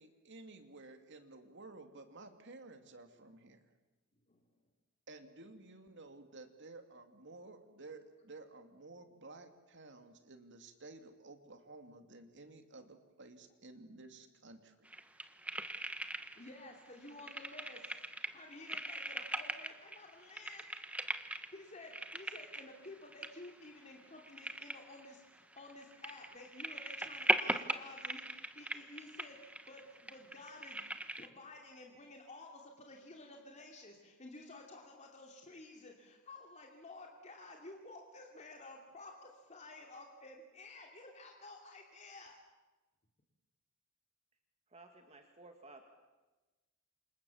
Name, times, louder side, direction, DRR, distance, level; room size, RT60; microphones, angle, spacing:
voice 1, 0.0-3.6 5.1-14.9, right 2 dB, 60° right, 7 dB, 2.5 m, -54 dB
sound 1, 14.9-16.6 16.9-31.3, right 1 dB, 5° right, 1.2 m, -40 dB
voice 2, 16.3-18.0 18.3-20.6 21.5-30.9 31.2-42.4, left 2 dB, 35° left, 1 dB, 2.8 m, -53 dB
voice 3, 44.7-45.8, right 2 dB, 30° right, 4 dB, 2.2 m, -56 dB
28.5 x 26.5 x 7.2 m, 1.1 s
head